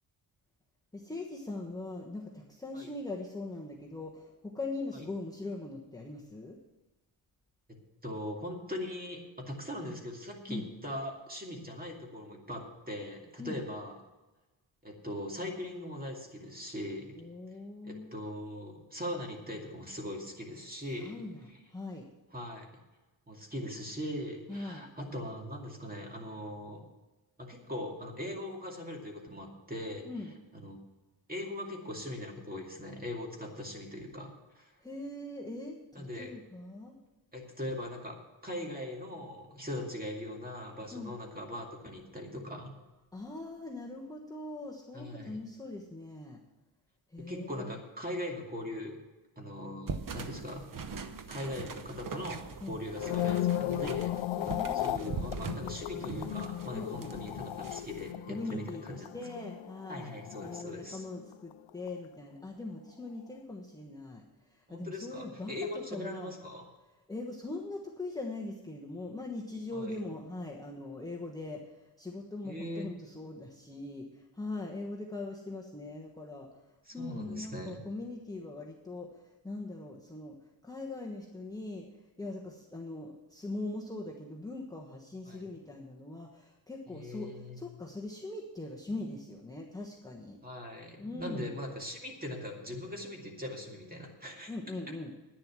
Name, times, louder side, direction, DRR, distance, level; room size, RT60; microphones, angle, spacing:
voice 1, 0.9-6.6 10.5-10.7 13.4-13.6 17.2-18.1 21.0-22.1 24.5-24.9 30.0-30.3 34.8-36.9 40.9-41.1 43.1-46.4 47.1-47.8 52.6-52.8 54.4-55.2 56.7-57.1 58.3-60.1 60.4-66.3 67.1-76.6 76.9-80.4 80.6-90.4 91.0-91.5 94.5-95.1, left 2 dB, 10° left, -2 dB, 1.2 m, -41 dB
voice 2, 7.7-13.9 14.8-17.2 17.8-21.2 22.3-22.7 23.3-26.8 27.4-30.1 30.5-30.8 31.3-34.7 35.9-36.3 37.3-38.2 38.4-42.7 44.9-45.4 47.2-49.0 49.4-50.6 51.3-54.1 54.7-59.1 59.9-61.0 64.7-66.6 69.7-69.9 72.4-72.9 76.9-77.8 85.2-85.4 86.9-87.6 90.4-94.5, left 1 dB, 20° right, 1 dB, 2.4 m, -40 dB
sound 1, 49.9-58.1, right 5 dB, 45° right, 0.9 m, -42 dB
sound 2, 52.8-61.2 61.5-61.9, left 12 dB, 85° left, 0.6 m, -36 dB
10.5 x 9.9 x 6.1 m, 1.1 s
wide cardioid pair, 140°, 46 cm